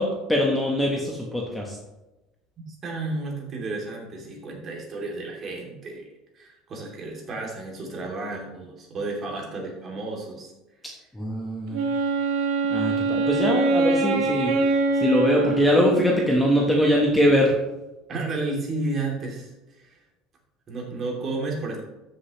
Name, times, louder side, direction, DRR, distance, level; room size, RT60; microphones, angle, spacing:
voice 1, 0.0-1.8 11.1-11.9 12.7-14.6 14.9-17.5, equal, 5° left, -1 dB, 1.1 m, -22 dB
voice 2, 2.7-6.1 6.3-10.5 18.1-20.0 20.7-21.8, right 2 dB, 30° right, -1 dB, 2.6 m, -32 dB
Wind instrument woodwind instrument, 11.7-16.5, right 3 dB, 75° right, 1.3 m, -24 dB
13.5 x 6.7 x 3.1 m, 1.0 s
cardioid pair, 160°, 0 cm